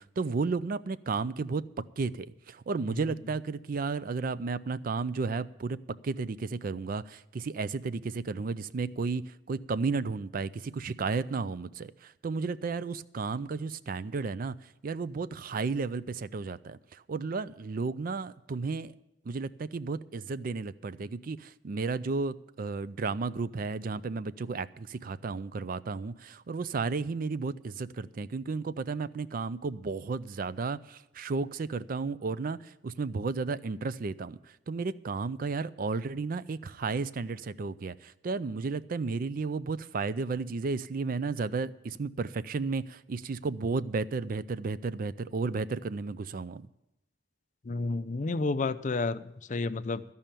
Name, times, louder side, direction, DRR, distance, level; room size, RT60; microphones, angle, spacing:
voice 1, 0.0-1.6 2.0-14.6 14.8-18.9 19.3-34.4 34.7-46.7, right 4 dB, 50° right, 16 dB, 0.4 m, -33 dB
voice 2, 47.7-50.0, left 3 dB, 40° left, 13 dB, 0.5 m, -31 dB
14.0 x 5.6 x 8.9 m, 0.86 s
head